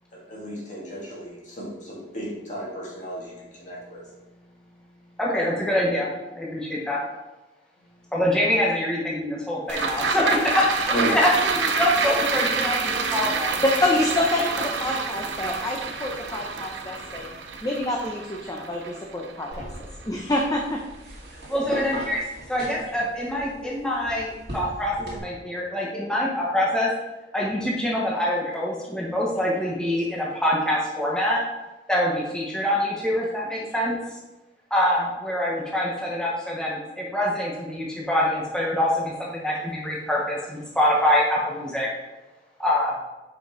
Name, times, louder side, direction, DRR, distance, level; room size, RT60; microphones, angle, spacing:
voice 1, 0.1-5.2 7.8-7.9 10.9-11.2, equal, 45° left, -4 dB, 2.5 m, -34 dB
voice 2, 5.2-6.1 6.3-7.0 8.1-13.6 21.5-22.2 22.5-26.9 27.3-31.4 31.9-33.9 34.7-41.9 42.6-43.0, left 1 dB, 5° left, -4 dB, 1.0 m, -25 dB
sound 1, 9.7-20.2 20.6-20.7, right 4 dB, 80° right, 0.8 m, -28 dB
voice 3, 13.8-17.4 17.6-19.7 20.0-20.8, left 1 dB, 20° left, 0 dB, 0.7 m, -27 dB
sound 2, 19.5-25.2, right 1 dB, 60° right, 2.2 m, -39 dB
7.9 x 5.2 x 3.8 m, 1.1 s
head